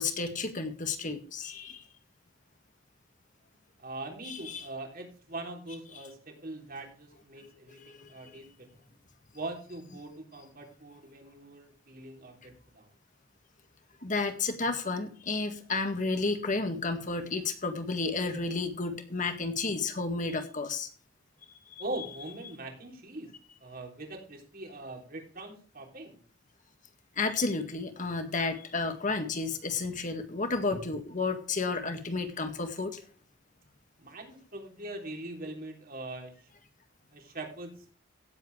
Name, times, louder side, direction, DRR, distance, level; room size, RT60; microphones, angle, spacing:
voice 1, 0.0-1.8 4.2-4.7 7.8-8.1 14.0-20.9 27.2-33.0, left 3 dB, 40° left, 7 dB, 2.0 m, -32 dB
voice 2, 3.8-8.7 9.3-12.9 21.8-23.3 23.6-26.2 34.0-36.5 37.1-37.9, right 2 dB, 45° right, 3 dB, 3.4 m, -42 dB
17.0 x 8.1 x 3.3 m, 0.40 s
head